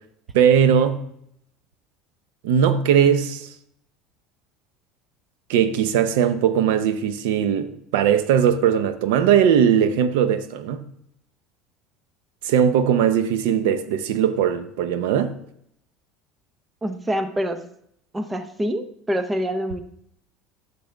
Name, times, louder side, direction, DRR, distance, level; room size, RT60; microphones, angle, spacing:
voice 1, 0.3-1.0 2.4-3.5 5.5-10.8 12.4-15.3, right 8 dB, 85° right, 0.7 m, -19 dB
voice 2, 16.8-17.6 18.1-19.8, equal, 10° right, 0.6 m, -26 dB
10.0 x 6.8 x 3.4 m
cardioid pair, 145°, 0 cm